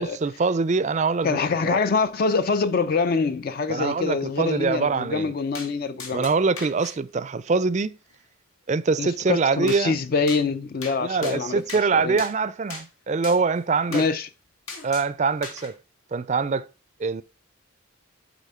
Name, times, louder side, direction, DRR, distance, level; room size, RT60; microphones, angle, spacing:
voice 1, 0.0-1.4 1.6-1.8 3.7-5.3 6.1-8.0 8.7-10.0 11.0-14.0 14.8-15.8 16.1-16.7 17.0-17.2, right 4 dB, 35° right, 0.4 m, -24 dB
voice 2, 1.2-6.3 9.0-11.6 11.9-12.2 13.9-14.3, left 4 dB, 45° left, 0.4 m, -25 dB
sound 1, 5.5-5.7 6.0-6.9 9.7-9.8 10.3-10.4 10.8-11.0 11.2-11.8 12.2-12.3 12.7-12.9 13.2-13.4 13.9-14.1 14.7-15.1 15.4-15.7, left 4 dB, 85° left, 1.9 m, -37 dB
8.2 x 4.2 x 4.2 m
head